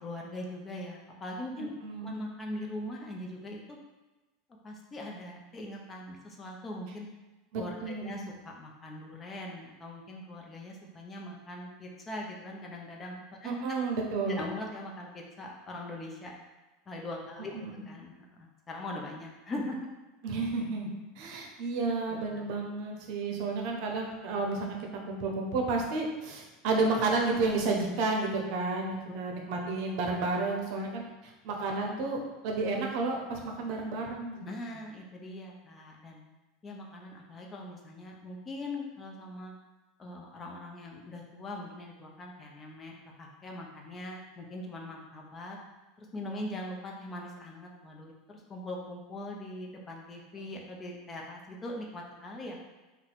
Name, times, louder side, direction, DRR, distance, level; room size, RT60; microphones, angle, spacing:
voice 1, 0.0-1.7 2.0-3.8 4.6-7.1 7.6-13.8 14.3-16.3 16.9-19.9 22.1-22.4 29.1-29.2 29.5-29.6 34.4-36.2 36.6-39.5 40.0-45.6 46.0-52.7, left 1 dB, 25° left, 0 dB, 0.6 m, -41 dB
voice 2, 1.8-2.2 7.5-8.3 13.4-14.5 17.5-17.8 20.2-20.9 21.2-31.0 31.4-34.5, right 3 dB, 60° right, 1 dB, 0.7 m, -31 dB
2.7 x 2.2 x 4.0 m, 1.1 s
supercardioid pair, 120°, 0 cm